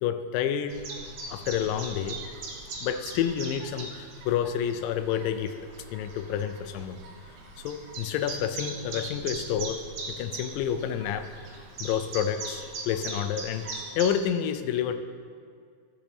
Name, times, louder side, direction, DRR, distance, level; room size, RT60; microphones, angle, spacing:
voice 1, 0.0-0.8 1.3-2.2 2.8-7.0 7.6-9.8 10.1-11.3 11.8-15.0, left 9 dB, 80° left, 9 dB, 2.2 m, -29 dB
Chirp tweet, 0.7-14.3, right 3 dB, 70° right, 2.8 m, -40 dB
13.5 x 7.4 x 3.4 m, 2.1 s
omnidirectional pair, 4.1 m